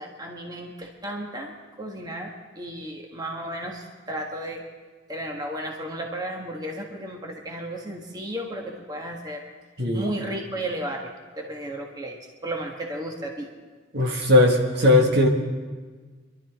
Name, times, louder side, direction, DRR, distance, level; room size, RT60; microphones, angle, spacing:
voice 1, 0.0-1.5 1.8-4.6 5.1-9.4 9.9-12.2 12.4-13.5, right 1 dB, 20° right, 0 dB, 1.5 m, -34 dB
voice 2, 9.8-10.1 13.9-15.3, left 1 dB, 60° right, 0 dB, 1.9 m, -18 dB
26.0 x 12.0 x 3.7 m, 1.4 s
head